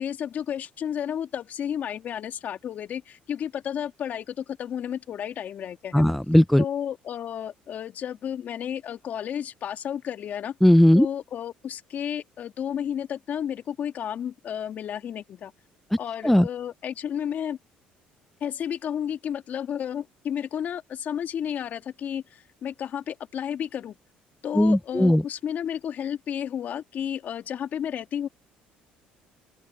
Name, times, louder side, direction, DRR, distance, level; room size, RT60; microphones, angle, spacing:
voice 1, 0.0-6.1 6.6-10.5 10.9-15.5 16.0-17.6 18.4-24.0 24.4-28.3, left 9 dB, 55° left, 2.4 m, -32 dB
voice 2, 5.9-6.6 10.6-11.1 16.2-16.4 24.6-25.2, left 1 dB, 5° left, 0.7 m, -17 dB
open air
supercardioid pair, 85°, 3 cm